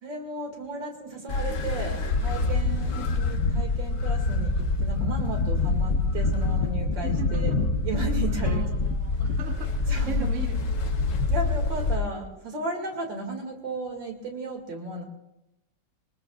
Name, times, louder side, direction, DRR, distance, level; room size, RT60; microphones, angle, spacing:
voice 1, 0.0-7.5 7.8-8.6 9.9-10.3 11.3-15.0, right 2 dB, 70° right, 1 dB, 3.1 m, -34 dB
sound 1, 1.3-12.0, left 3 dB, 45° left, 1.3 m, -26 dB
voice 2, 2.8-3.2 7.0-7.6 8.4-10.9, right 5 dB, 45° right, 3 dB, 1.4 m, -38 dB
23.5 x 19.5 x 2.5 m, 0.90 s
omnidirectional pair, 2.1 m